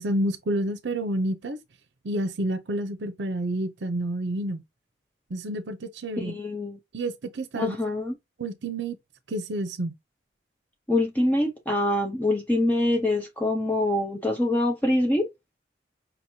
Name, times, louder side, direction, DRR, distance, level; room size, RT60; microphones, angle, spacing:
voice 1, 0.0-1.6 2.0-4.6 5.3-6.4 6.9-7.8 8.4-9.0 9.3-9.9, right 1 dB, 80° right, 0.6 m, -29 dB
voice 2, 6.2-6.8 7.6-8.2 10.9-15.3, left 1 dB, 10° left, 0.6 m, -25 dB
5.2 x 3.0 x 2.7 m
head